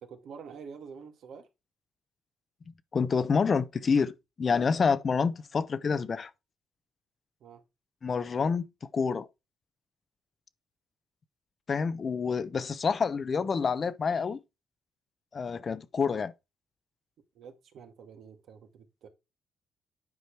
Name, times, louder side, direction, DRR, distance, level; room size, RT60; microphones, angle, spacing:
voice 1, 0.0-1.5 7.4-7.6 17.3-19.1, right 6 dB, 70° right, 1.9 m, -47 dB
voice 2, 2.9-6.3 8.0-8.7 8.9-9.3 11.7-14.4 15.3-16.3, left 5 dB, 40° left, 0.8 m, -28 dB
9.5 x 5.1 x 4.7 m
cardioid pair, 90°, 0 cm